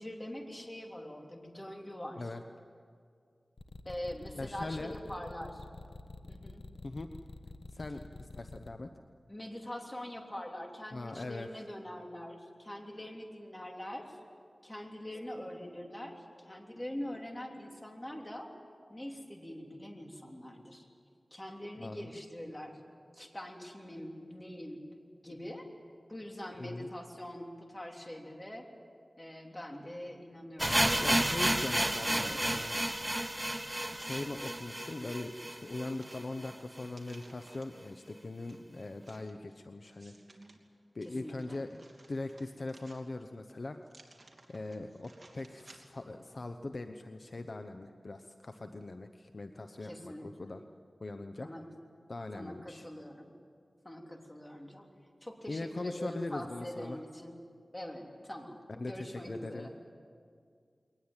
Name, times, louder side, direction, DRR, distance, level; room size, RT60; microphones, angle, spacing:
voice 1, 0.0-2.3 3.8-5.7 6.3-6.6 9.3-14.2 14.6-18.5 18.9-20.9 21.3-22.8 23.1-24.8 25.2-25.7 26.1-28.7 29.2-31.3 31.8-32.7 41.0-41.6 49.8-50.5 51.4-51.7 52.3-53.3 53.8-54.9 55.2-57.4 57.7-58.6 58.9-59.7, left 1 dB, 20° left, 1 dB, 3.3 m, -44 dB
sound 1, 3.6-8.7, left 2 dB, 70° left, 1.3 m, -47 dB
voice 2, 4.3-4.9 6.8-7.1 7.7-8.9 10.9-11.5 21.8-22.1 26.6-26.9 31.0-32.9 33.9-40.1 40.9-41.8 42.1-43.8 44.5-50.6 51.0-51.5 52.1-52.9 55.5-57.0 58.7-59.7, left 2 dB, 55° left, 7 dB, 0.9 m, -41 dB
sound 2, 30.6-36.5 36.8-36.9 37.1-37.2 37.8-37.9, right 1 dB, 15° right, 0.5 m, -32 dB
sound 3, 33.7-34.9 35.3-37.9 38.5-40.6 41.0-43.3 43.8-46.1 46.5-46.6, right 2 dB, 45° right, 2.9 m, -59 dB
22.5 x 19.5 x 9.0 m, 2.2 s
wide cardioid pair, 70°, 0 cm